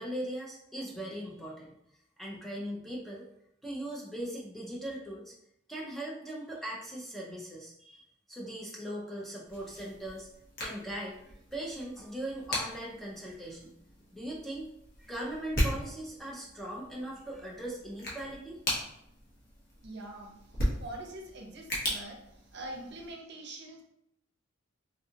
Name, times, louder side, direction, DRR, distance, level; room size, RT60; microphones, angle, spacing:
voice 1, 0.0-1.7 2.2-3.3 3.6-5.3 5.7-10.3 10.6-13.7 14.1-14.7 15.0-18.6, right 1 dB, ahead, -4 dB, 0.5 m, -39 dB
sound 1, 9.5-23.1, left 1 dB, 45° left, 0.9 m, -38 dB
voice 2, 19.8-23.8, right 1 dB, 55° right, 1 dB, 0.6 m, -44 dB
3.6 x 2.3 x 2.7 m, 0.78 s
head